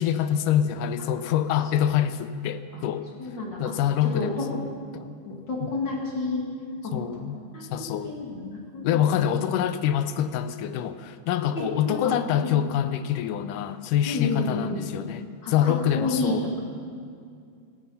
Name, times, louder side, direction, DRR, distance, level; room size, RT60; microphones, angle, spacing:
voice 1, 0.0-3.1 3.6-4.6 4.9-5.2 6.9-8.1 8.8-16.5, left 10 dB, 80° left, 12 dB, 2.2 m, -26 dB
voice 2, 3.2-3.6 4.1-4.5 5.2-6.4 6.8-7.0 7.5-7.6 8.0-9.3 11.5-12.6 14.0-14.8 15.4-16.6, left 2 dB, 35° left, -2 dB, 2.7 m, -30 dB
17.0 x 14.0 x 5.6 m, 2.3 s
omnidirectional pair, 3.7 m